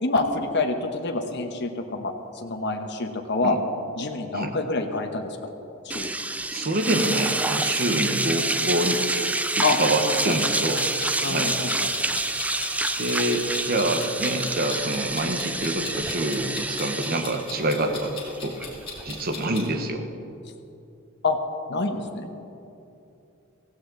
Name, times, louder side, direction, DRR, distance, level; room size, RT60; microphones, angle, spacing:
voice 1, 0.0-3.6 4.0-5.4 5.8-6.1 9.6-9.8 10.0-10.4 11.2-11.9 21.2-21.4 21.7-22.3, left 3 dB, 55° left, 4 dB, 1.1 m, -27 dB
sound 1, 5.9-19.4, right 2 dB, 5° right, 0.4 m, -27 dB
voice 2, 6.5-9.0 9.6-10.9 11.2-11.6 13.0-18.1 18.4-18.6 19.0-20.1, right 1 dB, 45° right, 5 dB, 1.1 m, -26 dB
Clock, 10.3-19.6, left 5 dB, 25° left, 3.4 m, -38 dB
16.5 x 15.5 x 3.9 m, 2.8 s
head